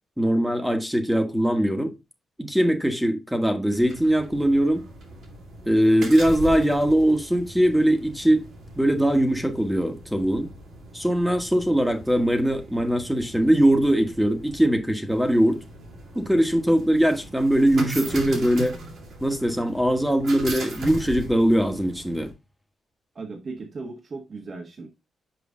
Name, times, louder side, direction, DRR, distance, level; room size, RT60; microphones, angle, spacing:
voice 1, 0.2-1.9 2.4-4.8 5.7-8.5 8.8-10.5 10.9-15.6 16.1-18.8 19.2-22.3, right 1 dB, 5° right, 1.3 m, -21 dB
sound 1, 3.7-22.3, right 2 dB, 75° right, 2.8 m, -39 dB
voice 2, 23.1-24.9, right 3 dB, 50° right, 1.3 m, -37 dB
6.1 x 4.9 x 3.7 m
cardioid pair, 80°, 0 cm